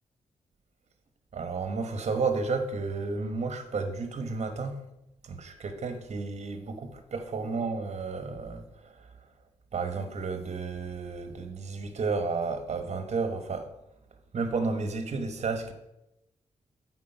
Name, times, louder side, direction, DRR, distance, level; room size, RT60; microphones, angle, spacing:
voice 1, 1.3-4.8 5.2-9.3 9.7-13.7 14.3-15.7, right 4 dB, 55° right, 1.1 m, -32 dB
8.6 x 4.2 x 5.7 m
cardioid pair, 75°, 13 cm